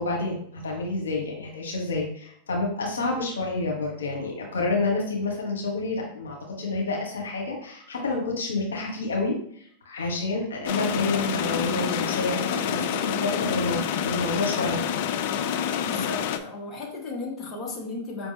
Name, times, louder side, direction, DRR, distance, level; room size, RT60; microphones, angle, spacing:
voice 1, 0.0-14.8, left 3 dB, 80° left, -1 dB, 1.3 m, -29 dB
sound 1, 10.7-16.4, left 8 dB, 60° left, 0.4 m, -28 dB
voice 2, 15.9-18.3, left 3 dB, 30° left, -2 dB, 1.5 m, -35 dB
5.4 x 3.3 x 2.8 m, 0.64 s
hypercardioid pair, 100°, 0 cm